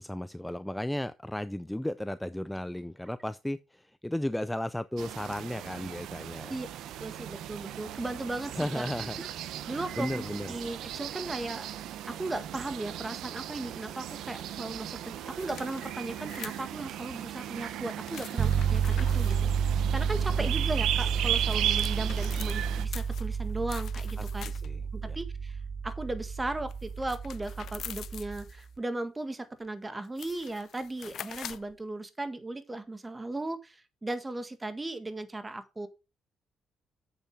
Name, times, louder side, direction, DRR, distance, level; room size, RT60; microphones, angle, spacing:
voice 1, 0.0-6.5 8.6-9.2 10.0-10.5 20.4-20.5 24.2-25.2, left 1 dB, 5° left, 0.5 m, -34 dB
sound 1, 5.0-22.9, right 11 dB, 85° right, 0.6 m, -36 dB
voice 2, 7.0-8.8 9.2-9.3 9.7-11.7 12.1-24.5 24.9-25.6 25.8-35.9, right 2 dB, 20° right, 1.7 m, -37 dB
sound 2, 14.1-14.7 15.3-17.0 18.0-19.4 21.0-24.9 26.7-28.7 29.7-29.8 30.0-31.8, left 10 dB, 70° left, 0.5 m, -45 dB
sound 3, 18.4-28.5, right 6 dB, 50° right, 0.8 m, -30 dB
8.1 x 7.1 x 4.7 m
cardioid pair, 90°, 0 cm